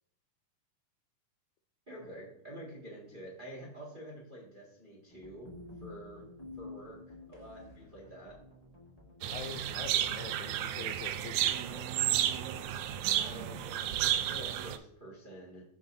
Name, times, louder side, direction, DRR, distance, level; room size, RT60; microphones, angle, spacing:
voice 1, 1.9-5.5 5.8-6.2 6.6-8.4 13.1-15.6, right 1 dB, 20° right, -4 dB, 1.4 m, -48 dB
sound 1, 5.1-10.1, left 2 dB, 60° left, 0.4 m, -51 dB
sound 2, 9.2-14.8, right 11 dB, 85° right, 1.6 m, -32 dB
voice 2, 9.3-11.9, left 6 dB, 80° left, 5 dB, 1.8 m, -45 dB
15.0 x 5.1 x 2.7 m, 0.69 s
omnidirectional pair, 3.8 m